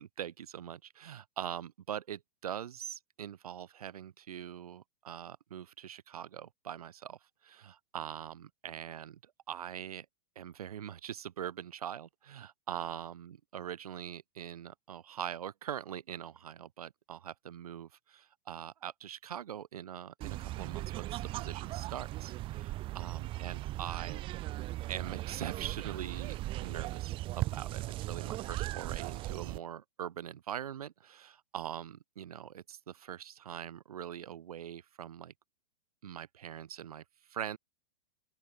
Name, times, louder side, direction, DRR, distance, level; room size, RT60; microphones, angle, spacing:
voice 1, 0.0-7.2 7.4-9.2 9.5-10.1 10.4-24.3 24.9-27.8 28.1-35.3 36.0-37.0 37.3-37.6, right 9 dB, 90° right, 2.0 m, -43 dB
sound 1, 20.2-29.6, right 17 dB, 30° right, 1.1 m, -38 dB
open air
hypercardioid pair, 145°, 19 cm